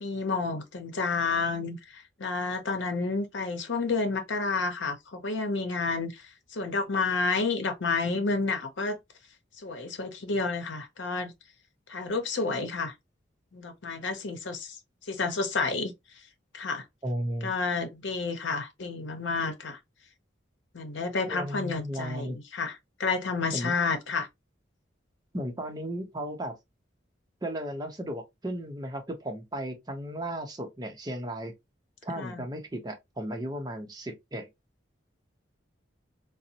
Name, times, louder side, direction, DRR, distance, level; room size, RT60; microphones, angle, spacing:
voice 1, 0.0-6.1 6.5-9.0 9.6-11.3 11.9-12.9 13.5-14.7 15.1-15.9 16.5-16.8 17.4-19.8 20.7-22.7 23.0-24.3 32.2-32.4, left 4 dB, 80° left, 0.7 m, -30 dB
voice 2, 17.0-17.5 21.3-22.4 23.5-23.8 25.3-26.6 27.4-31.5 32.0-34.5, equal, 20° right, 0.6 m, -35 dB
3.8 x 2.0 x 2.7 m
head